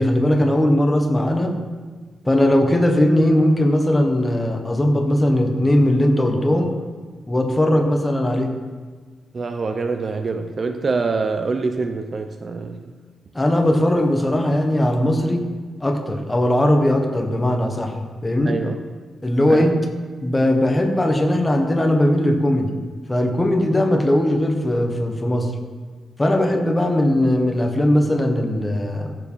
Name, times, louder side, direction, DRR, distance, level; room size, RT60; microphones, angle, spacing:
voice 1, 0.0-1.6 2.2-6.7 7.3-8.5 13.3-15.4 15.8-17.9 18.2-18.6 19.2-19.8 20.2-22.7 23.1-25.5 26.2-29.1, left 1 dB, 15° left, 4 dB, 1.3 m, -19 dB
voice 2, 9.3-12.9 18.5-18.8 19.5-19.7, right 4 dB, 35° right, 7 dB, 0.6 m, -25 dB
14.5 x 7.4 x 5.6 m, 1.4 s
wide cardioid pair, 145°, 0 cm